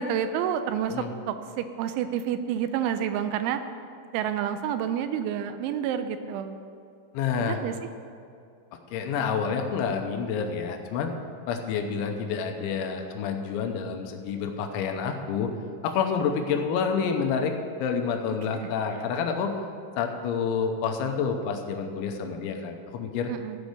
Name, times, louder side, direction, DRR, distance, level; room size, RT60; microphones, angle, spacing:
voice 1, 0.0-3.6 4.1-6.6 7.4-7.7 18.5-18.7 23.3-23.6, right 9 dB, 85° right, 10 dB, 2.9 m, -29 dB
voice 2, 7.1-7.6 8.9-11.1 11.5-15.5 15.8-17.5 17.8-19.6 20.0-23.3, left 6 dB, 85° left, 4 dB, 3.0 m, -28 dB
14.5 x 5.2 x 6.5 m, 2.4 s
omnidirectional pair, 5.5 m